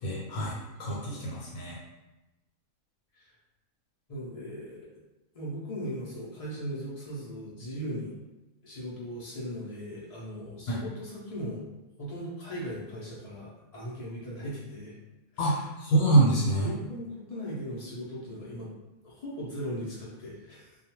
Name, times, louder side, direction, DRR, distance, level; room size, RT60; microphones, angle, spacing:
voice 1, 0.0-1.8 10.7-10.8 15.4-16.7, right 2 dB, 80° left, -5 dB, 1.1 m, -26 dB
voice 2, 4.1-4.9 5.3-8.1 8.6-11.6 12.0-15.0 15.3-15.6 16.5-18.7 19.0-20.8, equal, 60° left, -6 dB, 0.4 m, -38 dB
2.3 x 2.2 x 3.0 m, 1.0 s
omnidirectional pair, 1.5 m